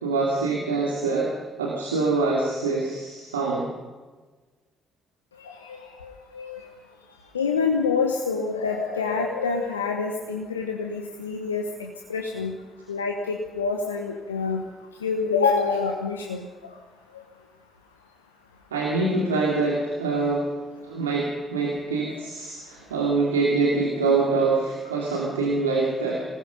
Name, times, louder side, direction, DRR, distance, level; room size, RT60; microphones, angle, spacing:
voice 1, 0.0-1.3 1.6-3.7 18.7-20.5 20.8-26.2, right 3 dB, 85° right, -3 dB, 2.5 m, -24 dB
voice 2, 5.6-6.6 7.3-12.5 12.9-14.6 15.0-16.5, left 5 dB, 85° left, 2 dB, 1.2 m, -27 dB
25.5 x 19.5 x 5.3 m, 1.3 s
figure-of-eight pair, 40°, 0 cm